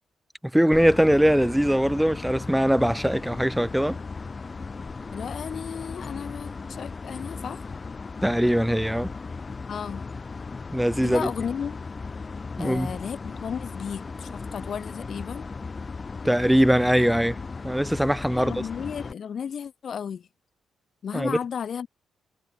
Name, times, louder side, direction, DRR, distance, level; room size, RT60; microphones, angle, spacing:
voice 1, 0.5-4.0 8.2-9.1 10.7-11.3 12.6-12.9 16.2-17.4 17.6-18.6 21.1-21.4, equal, 5° right, 0.5 m, -21 dB
sound 1, 0.7-19.1, left 4 dB, 40° left, 1.7 m, -37 dB
voice 2, 5.1-7.7 9.7-10.1 11.0-11.8 12.6-15.5 18.3-20.3 21.0-21.9, left 7 dB, 60° left, 1.7 m, -34 dB
hypercardioid pair, 45°, 0 cm